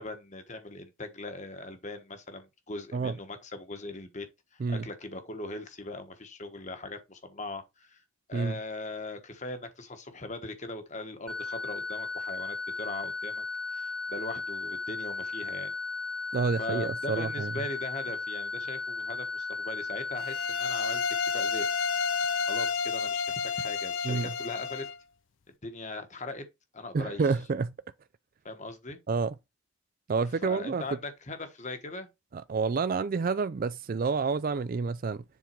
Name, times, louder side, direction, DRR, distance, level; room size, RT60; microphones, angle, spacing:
voice 1, 0.0-4.3 4.5-8.0 8.3-15.7 16.6-21.6 22.5-24.8 25.6-26.4 26.7-27.2 28.4-29.0 30.4-32.1, left 2 dB, 35° left, 1.3 m, -40 dB
sound 1, 11.3-22.7, left 3 dB, 5° left, 1.2 m, -35 dB
voice 2, 16.3-17.5 24.0-24.3 26.9-27.7 29.1-29.3 30.1-30.8 32.3-35.2, right 4 dB, 40° right, 0.3 m, -29 dB
sound 2, 20.2-25.0, left 6 dB, 60° left, 0.5 m, -31 dB
7.2 x 3.8 x 4.6 m
head